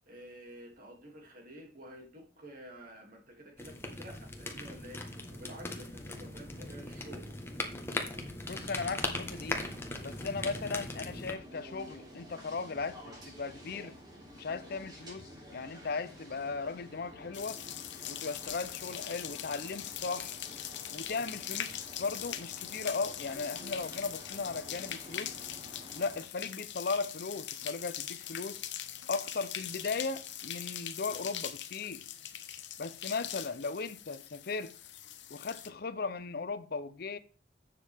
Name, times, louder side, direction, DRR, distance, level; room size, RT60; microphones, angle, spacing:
voice 1, 0.0-7.3, right 1 dB, 50° right, 2.6 m, -50 dB
sound 1, 3.6-11.3, left 2 dB, 15° left, 1.3 m, -39 dB
voice 2, 8.5-9.6 10.0-14.0 14.3-17.6 18.1-20.4 20.9-25.4 25.9-28.6 29.1-32.0 32.8-34.7 35.3-37.2, left 4 dB, 55° left, 0.6 m, -37 dB
sound 2, 8.5-26.2, equal, 20° right, 3.1 m, -51 dB
sound 3, 17.3-35.7, left 11 dB, 75° left, 1.0 m, -42 dB
11.0 x 7.5 x 3.5 m
head